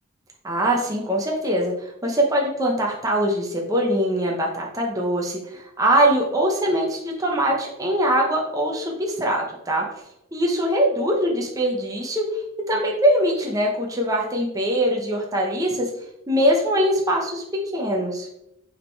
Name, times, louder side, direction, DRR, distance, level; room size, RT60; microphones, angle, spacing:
voice 1, 0.4-9.8 10.3-12.2 12.7-15.9 16.3-17.4 17.7-18.3, right 1 dB, 15° right, -1 dB, 0.8 m, -22 dB
6.5 x 3.8 x 4.5 m, 0.82 s
head